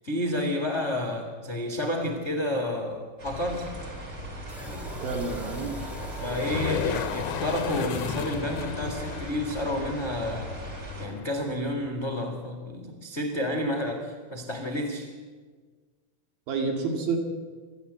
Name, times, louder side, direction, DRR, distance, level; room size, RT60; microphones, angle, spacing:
voice 1, 0.0-3.7 6.2-10.5 11.0-15.1, left 1 dB, 30° left, 3 dB, 1.4 m, -30 dB
sound 1, 3.2-11.1, equal, 25° right, 3.9 m, -39 dB
sound 2, 4.5-8.7, left 1 dB, ahead, 2.0 m, -41 dB
voice 2, 5.0-5.8 16.5-17.2, right 4 dB, 65° right, 2 dB, 4.1 m, -29 dB
sound 3, 6.2-11.9, left 8 dB, 70° left, 2.1 m, -34 dB
28.0 x 12.0 x 8.2 m, 1.5 s
omnidirectional pair, 4.6 m